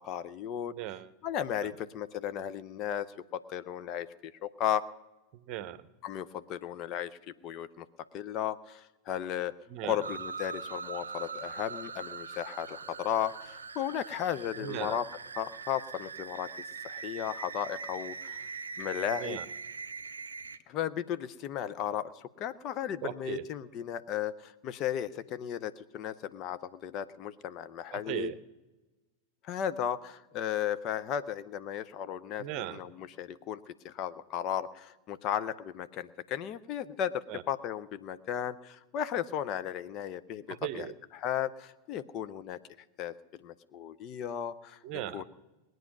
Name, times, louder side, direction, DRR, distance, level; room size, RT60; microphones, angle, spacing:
voice 1, 0.0-0.7 1.2-3.1 3.3-4.8 6.0-7.1 7.4-7.9 8.1-9.5 9.8-15.0 15.4-16.5 16.8-18.4 18.8-19.4 20.7-28.3 29.4-40.9 41.1-42.6 43.0-44.8 45.1-45.2, left 10 dB, 35° left, 12 dB, 0.6 m, -35 dB
voice 2, 0.7-1.1 1.6-1.7 5.3-5.9 9.7-10.0 14.6-15.0 19.2-19.4 23.0-23.4 27.9-28.4 32.4-32.8 37.3-37.4 40.5-40.9 44.8-45.2, right 12 dB, 40° right, 14 dB, 0.8 m, -38 dB
sound 1, 10.0-20.6, right 5 dB, 75° right, 0.6 m, -42 dB
20.5 x 9.2 x 6.0 m, 1.1 s
figure-of-eight pair, 90°, 0 cm